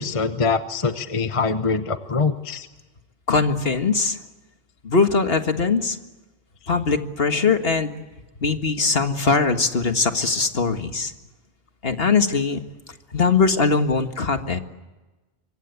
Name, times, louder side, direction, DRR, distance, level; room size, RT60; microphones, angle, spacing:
voice 1, 0.0-2.7, left 4 dB, 30° left, 9 dB, 1.0 m, -24 dB
voice 2, 3.3-4.2 4.8-6.0 6.7-7.9 8.4-11.1 11.8-12.6 13.1-14.6, left 4 dB, 55° left, 7 dB, 2.0 m, -21 dB
25.5 x 24.5 x 8.4 m, 1.1 s
omnidirectional pair, 1.2 m